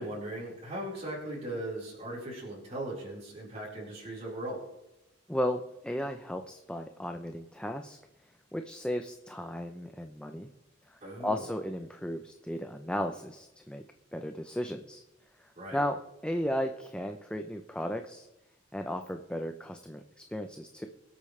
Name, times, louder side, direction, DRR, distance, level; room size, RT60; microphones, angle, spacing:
voice 1, 0.0-4.6 11.0-11.5 15.6-15.8, right 1 dB, 35° right, -5 dB, 4.5 m, -38 dB
voice 2, 5.3-8.0 8.5-10.5 10.9-13.8 14.1-15.0 15.7-18.3 18.7-20.0 20.3-20.9, equal, 5° left, 5 dB, 0.6 m, -35 dB
23.0 x 8.6 x 3.3 m, 0.92 s
head